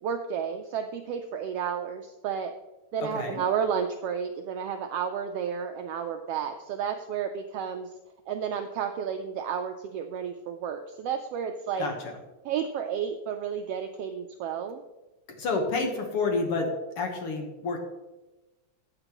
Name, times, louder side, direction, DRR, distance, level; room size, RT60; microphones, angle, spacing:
voice 1, 0.0-2.5 2.9-7.9 8.3-11.9 12.4-14.8, right 7 dB, 80° right, 5 dB, 1.4 m, -31 dB
voice 2, 15.4-16.7 17.0-17.9, left 3 dB, 60° left, 3 dB, 1.9 m, -29 dB
14.0 x 8.9 x 3.0 m, 1.1 s
omnidirectional pair, 3.3 m